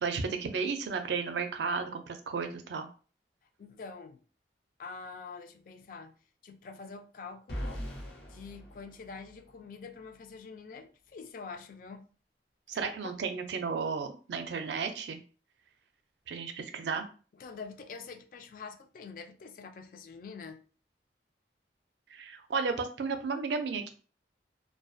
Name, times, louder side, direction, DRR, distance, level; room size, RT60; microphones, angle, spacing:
voice 1, 0.0-2.9 12.7-15.2 16.3-17.1 22.1-23.9, right 5 dB, 80° right, 0.4 m, -33 dB
voice 2, 3.6-4.2 4.8-6.1 6.4-7.8 8.3-12.1 13.0-13.1 17.4-20.6, left 4 dB, 50° left, 0.3 m, -45 dB
sound 1, 7.5-9.6, equal, 75° left, 0.7 m, -40 dB
2.4 x 2.2 x 2.5 m
head